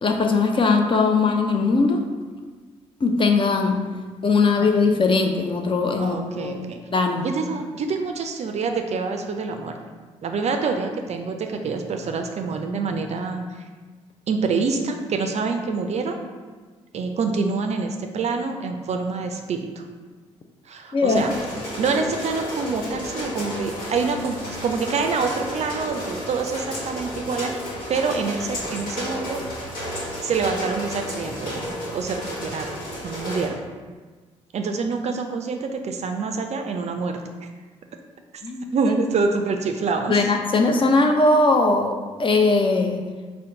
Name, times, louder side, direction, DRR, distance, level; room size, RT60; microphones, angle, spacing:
voice 1, 0.0-2.0 3.0-3.8 4.2-6.6 6.9-7.3 20.9-21.2 38.4-38.7 40.1-43.0, left 3 dB, 35° left, 4 dB, 0.5 m, -20 dB
voice 2, 6.0-6.8 7.2-9.8 10.2-13.6 14.3-16.2 16.9-19.9 20.7-21.3 21.8-27.6 27.9-29.8 30.2-32.8 33.0-33.6 34.5-37.5 38.7-40.3, right 4 dB, 45° right, 5 dB, 0.4 m, -26 dB
sound 1, 21.1-33.5, equal, 65° left, 1.1 m, -32 dB
4.3 x 2.1 x 3.7 m, 1.4 s
hypercardioid pair, 40°, 16 cm